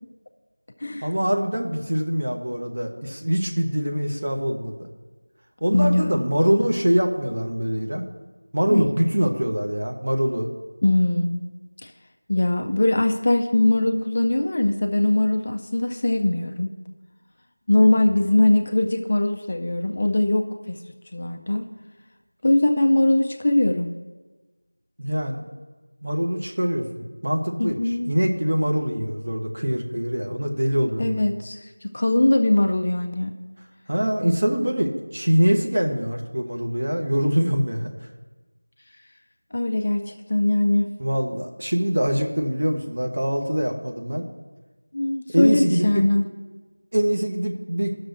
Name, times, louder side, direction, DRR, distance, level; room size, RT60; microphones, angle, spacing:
voice 1, 1.0-4.8 5.6-8.0 8.5-10.5 25.0-25.5 26.0-27.8 28.1-31.2 33.9-37.9 41.0-44.3 45.3-46.0 46.9-48.0, equal, 40° right, 2 dB, 1.0 m, -23 dB
voice 2, 5.7-6.2 8.7-8.9 10.8-11.4 11.8-11.9 12.3-16.7 17.7-20.8 21.1-21.7 22.4-23.9 27.6-28.1 31.0-33.3 39.5-40.9 44.9-46.2, left 1 dB, 25° left, 4 dB, 0.4 m, -21 dB
19.0 x 6.3 x 2.5 m, 1.3 s
figure-of-eight pair, 180°, 0 cm